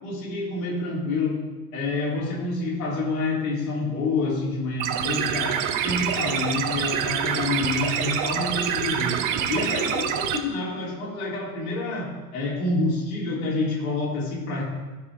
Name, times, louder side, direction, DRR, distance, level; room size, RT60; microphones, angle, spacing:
voice 1, 0.0-1.4 1.7-14.6, left 3 dB, 65° left, -4 dB, 3.6 m, -28 dB
sound 1, 4.8-10.4, right 9 dB, 40° right, 1.0 m, -26 dB
15.5 x 6.1 x 3.7 m, 1.2 s
figure-of-eight pair, 75°, 46 cm